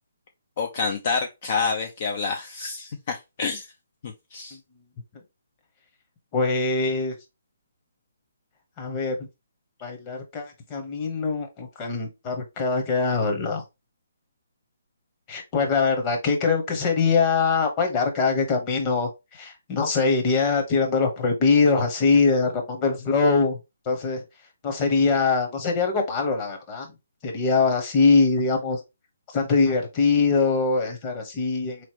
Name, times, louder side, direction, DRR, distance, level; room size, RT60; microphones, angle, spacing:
voice 1, 0.6-3.7 4.0-4.6, left 4 dB, 45° left, 0.6 m, -28 dB
voice 2, 6.3-7.1 8.8-9.1 9.8-13.6 15.3-23.6 23.9-24.2 24.6-26.9 27.2-28.8 29.3-31.8, left 4 dB, 25° left, 1.1 m, -23 dB
3.8 x 3.2 x 2.9 m
hypercardioid pair, 150°, 0 cm